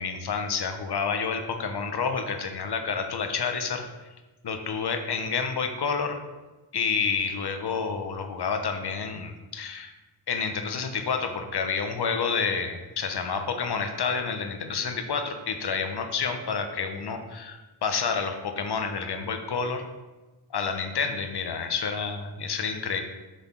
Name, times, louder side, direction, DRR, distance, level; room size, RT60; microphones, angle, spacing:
voice 1, 0.0-3.8 4.4-6.2 6.7-9.9 10.3-19.8 20.5-23.0, left 5 dB, 55° left, 6 dB, 1.0 m, -29 dB
6.2 x 3.4 x 5.7 m, 1.1 s
cardioid pair, 55°, 48 cm